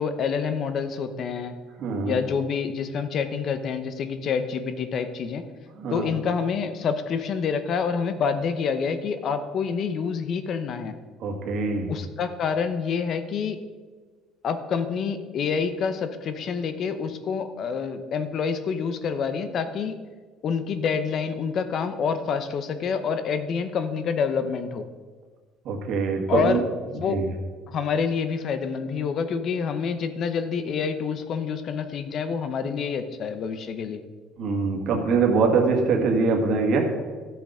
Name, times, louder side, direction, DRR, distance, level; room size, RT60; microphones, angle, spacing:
voice 1, 0.0-1.5 2.0-5.4 5.9-11.0 11.9-13.6 14.4-19.9 20.4-24.9 26.3-27.2 27.7-34.0, left 6 dB, 40° left, 10 dB, 0.8 m, -27 dB
voice 2, 1.8-2.2 5.8-6.1 11.2-11.9 25.7-26.6 27.1-27.3 34.4-36.9, right 4 dB, 55° right, 2 dB, 1.9 m, -23 dB
13.0 x 6.9 x 4.9 m, 1.4 s
cardioid pair, 155°, 0 cm